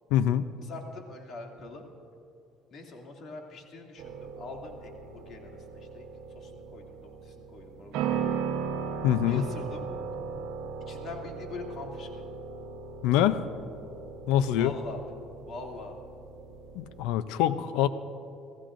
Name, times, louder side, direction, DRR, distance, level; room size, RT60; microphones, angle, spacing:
voice 1, 0.1-0.5 9.0-9.4 13.0-13.4 14.3-14.7 16.7-17.9, left 11 dB, 85° left, 12 dB, 0.5 m, -24 dB
voice 2, 0.6-1.9 2.7-6.1 6.3-8.5 9.3-9.9 10.9-12.4 14.6-15.0 15.4-16.0, left 3 dB, 55° left, 1 dB, 2.5 m, -43 dB
sound 1, 4.0-17.0, right 6 dB, 80° right, 0.9 m, -37 dB
29.0 x 15.0 x 2.6 m, 2.6 s
cardioid pair, 105°, 0 cm